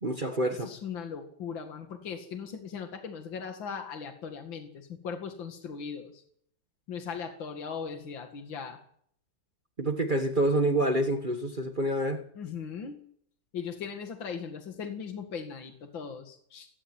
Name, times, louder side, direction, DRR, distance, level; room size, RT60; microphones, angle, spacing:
voice 1, 0.0-0.7 9.8-12.2, right 1 dB, 25° right, 1.3 m, -27 dB
voice 2, 0.7-6.2 6.9-8.8 12.4-13.0 13.5-16.7, left 6 dB, 65° left, 2.8 m, -38 dB
18.0 x 17.0 x 9.1 m
omnidirectional pair, 2.3 m